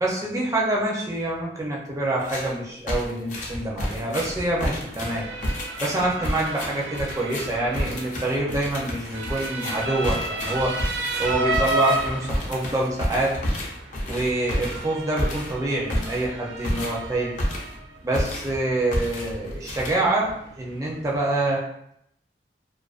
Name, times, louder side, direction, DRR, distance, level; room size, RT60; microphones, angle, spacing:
voice 1, 0.0-5.2 5.8-10.7 11.2-13.3 14.1-17.3 18.0-21.6, right 2 dB, 20° right, -4 dB, 0.4 m, -26 dB
sound 1, 2.2-2.5 2.9-17.8 18.1-18.6 18.9-20.3, equal, 45° left, 0.5 m, -30 dB
Motor vehicle (road) / Siren, 3.8-21.2, right 2 dB, 85° right, 0.4 m, -33 dB
2.4 x 2.2 x 2.3 m, 0.73 s
head